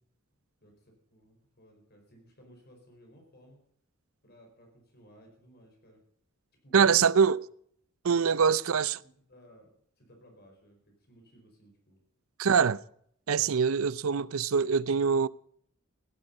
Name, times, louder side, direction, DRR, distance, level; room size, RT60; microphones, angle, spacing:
voice 1, 0.6-3.6 4.2-6.0 6.6-7.2 8.2-8.6 9.0-12.0, equal, 50° left, 4.8 m, -57 dB
voice 2, 6.7-7.4 8.0-8.9 12.4-12.8 13.3-15.3, right 6 dB, 75° right, 0.5 m, -24 dB
16.0 x 12.0 x 5.4 m
head